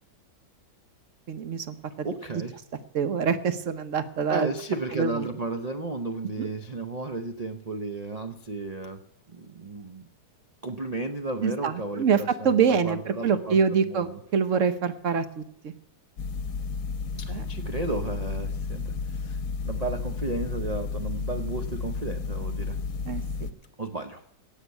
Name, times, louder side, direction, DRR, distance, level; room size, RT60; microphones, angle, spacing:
voice 1, 1.3-2.4 2.9-4.5 4.9-5.3 6.4-6.5 11.4-15.7 17.3-17.4 23.1-23.2, right 6 dB, 55° right, 12 dB, 1.1 m, -26 dB
voice 2, 2.0-2.6 4.3-9.0 9.3-10.1 10.6-14.2 17.2-22.8 23.8-24.2, right 3 dB, 70° right, 7 dB, 0.3 m, -33 dB
sound 1, 16.2-23.5, left 4 dB, 55° left, 1.2 m, -32 dB
17.5 x 6.7 x 8.2 m, 0.76 s
omnidirectional pair, 1.9 m